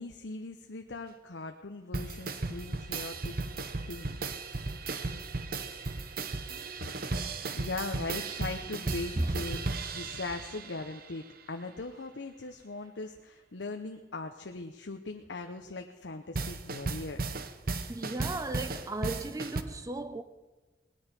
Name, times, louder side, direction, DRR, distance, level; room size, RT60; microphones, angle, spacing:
voice 1, 0.0-3.4 3.9-4.2 7.5-9.6 9.9-17.3, left 3 dB, 85° left, 0.8 m, -40 dB
sound 1, 1.9-11.1 16.3-19.6, right 3 dB, 60° right, 0.9 m, -35 dB
voice 2, 17.9-20.2, right 2 dB, 20° right, 0.6 m, -35 dB
19.0 x 9.8 x 5.9 m
head